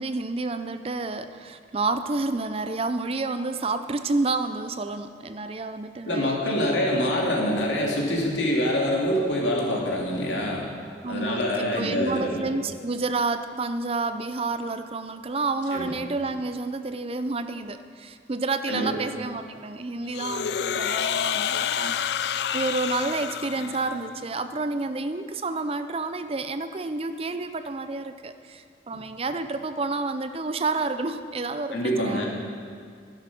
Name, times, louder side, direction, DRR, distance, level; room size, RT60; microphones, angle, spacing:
voice 1, 0.0-6.8 11.0-32.2, right 3 dB, 30° right, 10 dB, 0.5 m, -30 dB
voice 2, 6.1-10.6 11.1-12.4 15.7-15.9 18.7-18.9 31.7-32.3, equal, 85° left, -2 dB, 2.6 m, -25 dB
sound 1, 20.1-24.2, left 8 dB, 65° left, 0.4 m, -28 dB
12.0 x 11.0 x 6.1 m, 2.1 s
head